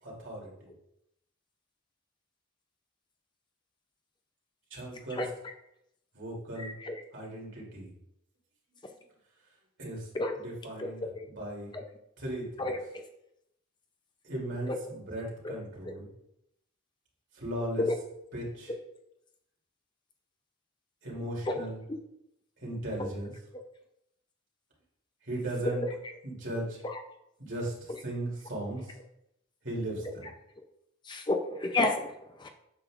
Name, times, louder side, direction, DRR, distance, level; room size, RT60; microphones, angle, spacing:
voice 1, 0.0-0.7 4.7-5.2 6.1-6.7 7.1-7.9 9.8-10.1 10.4-11.7 12.2-12.7 14.2-16.1 17.3-17.9 18.3-18.7 21.0-21.8 22.6-23.3 25.2-25.8 26.2-26.8 27.4-28.9 29.6-30.3, right 1 dB, 65° right, -4 dB, 2.7 m, -37 dB
voice 2, 5.1-5.5 6.6-7.0 10.1-10.3 10.8-11.3 11.7-11.8 12.6-13.0 14.7-14.8 15.9-16.0 17.8-18.0 21.5-21.6 21.9-22.0 23.0-23.1 25.6-25.8 26.8-27.0 31.1-32.5, left 2 dB, 20° left, 5 dB, 0.4 m, -31 dB
8.4 x 6.7 x 2.4 m, 0.80 s
head